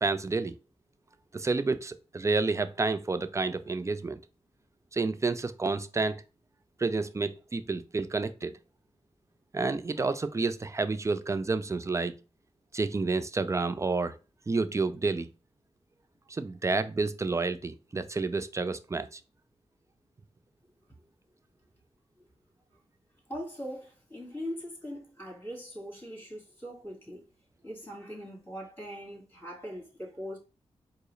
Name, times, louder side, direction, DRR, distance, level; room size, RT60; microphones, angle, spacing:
voice 1, 0.0-0.6 1.3-4.2 4.9-6.2 6.8-8.6 9.5-12.2 12.7-14.2 14.5-15.3 16.3-19.2, right 3 dB, 25° right, 0.4 m, -29 dB
voice 2, 23.3-27.3 27.6-30.4, equal, 20° left, 1.8 m, -41 dB
4.5 x 2.0 x 3.1 m
cardioid pair, 55°, 12 cm